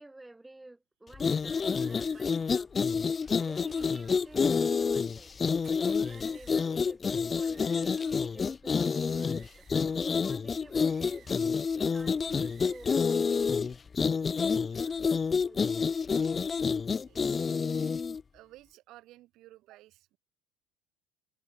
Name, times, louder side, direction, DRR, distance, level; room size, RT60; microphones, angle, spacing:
voice 1, 0.0-2.7 3.5-5.3 6.0-13.8 15.4-15.9, right 2 dB, 10° right, 1.8 m, -51 dB
sound 1, 1.1-18.2, left 5 dB, 25° left, 0.4 m, -28 dB
sound 2, 1.3-2.5 3.1-4.7 5.5-6.9 7.3-8.5 8.8-10.1 10.6-11.7 12.0-13.2, right 8 dB, 35° right, 3.0 m, -59 dB
voice 2, 14.6-15.3 17.0-17.4 18.3-20.2, right 16 dB, 60° right, 3.5 m, -56 dB
supercardioid pair, 115°, 0 cm